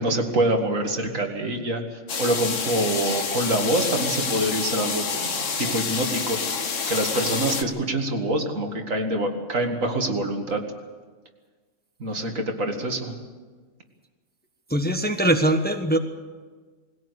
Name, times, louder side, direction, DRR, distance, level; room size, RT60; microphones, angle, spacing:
voice 1, 0.0-6.4 6.9-10.7 12.0-13.2, right 1 dB, 75° right, 3 dB, 2.5 m, -25 dB
sound 1, 2.1-7.6, left 5 dB, 70° left, 1.6 m, -28 dB
voice 2, 14.7-16.0, right 1 dB, 10° left, 5 dB, 1.2 m, -21 dB
20.5 x 17.0 x 8.2 m, 1.4 s
omnidirectional pair, 1.4 m